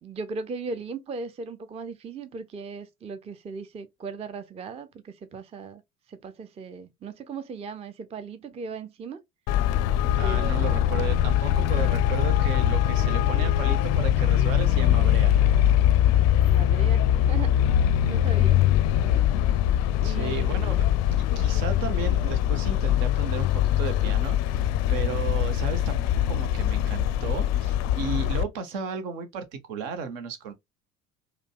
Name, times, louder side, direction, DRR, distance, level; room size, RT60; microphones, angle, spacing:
voice 1, 0.0-5.8 6.1-9.2 10.2-10.9 16.4-17.6 18.0-18.6 20.0-20.5, right 4 dB, 15° right, 0.5 m, -37 dB
Traffic noise roadway noise, 9.5-28.4, left 11 dB, 40° left, 0.4 m, -22 dB
voice 2, 10.2-15.3 20.0-20.8 21.2-30.5, right 6 dB, 65° right, 0.9 m, -34 dB
5.0 x 2.2 x 2.3 m
figure-of-eight pair, 60°, 42 cm